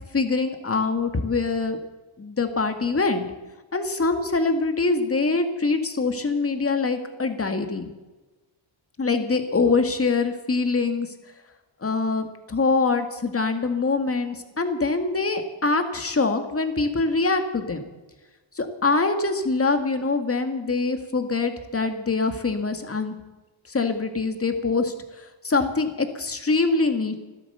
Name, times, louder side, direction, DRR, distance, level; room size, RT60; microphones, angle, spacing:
voice 1, 0.1-1.8 2.2-3.3 3.7-7.9 9.0-11.1 11.8-17.8 18.6-23.2 23.7-24.9 25.4-27.2, left 3 dB, 30° left, 7 dB, 2.0 m, -24 dB
16.0 x 12.5 x 6.8 m, 1.2 s
cardioid pair, 100°, 49 cm